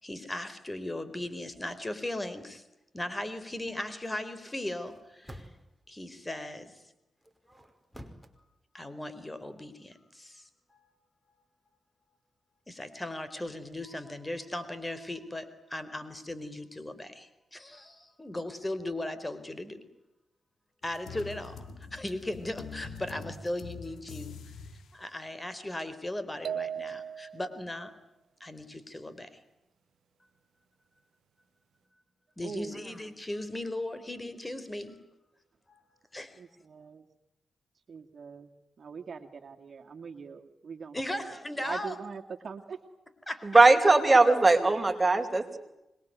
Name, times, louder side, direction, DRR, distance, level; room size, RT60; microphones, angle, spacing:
voice 1, 0.0-2.6 2.9-5.5 5.9-6.8 8.7-10.9 12.7-19.9 20.8-24.4 24.9-27.9 28.4-29.4 32.4-35.0 35.7-36.4 40.9-42.0 43.3-43.5 43.8-44.6, left 1 dB, 20° left, 13 dB, 4.3 m, -38 dB
sound 1, 1.4-1.8 4.7-5.8 7.2-8.3, equal, ahead, 5.0 m, -50 dB
sound 2, 20.8-24.9, left 5 dB, 75° left, 2.5 m, -44 dB
sound 3, 26.4-27.6, right 8 dB, 80° right, 1.0 m, -36 dB
voice 2, 32.4-32.8 36.4-37.0 37.9-38.5 38.8-41.2 41.6-42.8 45.1-45.2, right 5 dB, 55° right, 4 dB, 2.3 m, -42 dB
voice 3, 43.4-45.6, right 3 dB, 25° right, 6 dB, 4.7 m, -20 dB
26.0 x 22.0 x 9.4 m, 0.92 s
supercardioid pair, 40°, 0 cm